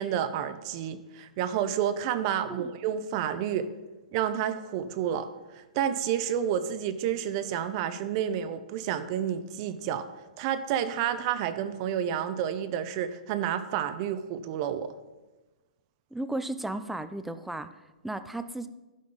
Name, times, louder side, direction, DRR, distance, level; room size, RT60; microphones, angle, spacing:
voice 1, 0.0-3.7 4.1-5.3 5.6-10.1 10.4-14.9, right 9 dB, 40° right, 11 dB, 0.7 m, -30 dB
voice 2, 16.1-17.7 18.0-18.7, right 1 dB, 5° right, 11 dB, 0.4 m, -34 dB
11.5 x 5.2 x 5.2 m, 1.1 s
hypercardioid pair, 130°, 4 cm